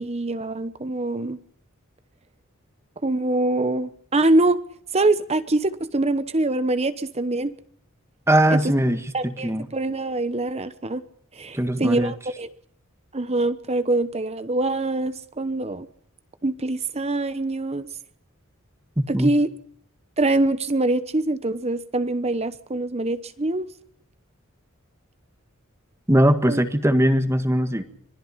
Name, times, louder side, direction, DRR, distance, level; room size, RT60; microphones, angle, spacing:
voice 1, 0.0-1.4 3.0-4.6 4.9-7.5 8.5-8.7 9.1-11.0 11.3-12.5 13.1-15.9 16.4-17.9 19.1-19.5 20.2-23.7 26.5-26.6, right 2 dB, 30° right, 13 dB, 1.0 m, -24 dB
voice 2, 8.3-9.7 11.5-12.1 19.0-19.3 26.1-27.8, right 1 dB, 15° right, 9 dB, 1.6 m, -20 dB
26.0 x 19.5 x 5.8 m, 0.64 s
head